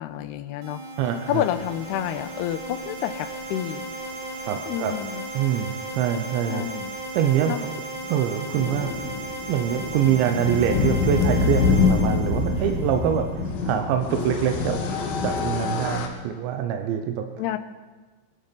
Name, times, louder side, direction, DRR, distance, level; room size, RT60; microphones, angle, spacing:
voice 1, 0.0-0.8 1.3-3.9 4.7-5.3 6.5-6.9 7.5-7.6 17.4-17.6, left 12 dB, 80° left, 10 dB, 2.5 m, -29 dB
sound 1, 0.6-13.3, right 2 dB, 50° right, 2.9 m, -36 dB
voice 2, 1.0-1.5 4.5-4.9 5.3-6.6 7.1-7.5 8.1-8.9 9.5-14.8 15.2-17.2, right 9 dB, 85° right, 5 dB, 3.2 m, -24 dB
sound 2, 3.3-3.4 4.7-4.8 5.0-5.1 5.3-5.5 8.0-16.1, left 4 dB, 65° left, 3.1 m, -25 dB
22.0 x 12.0 x 5.3 m, 1.3 s
omnidirectional pair, 5.1 m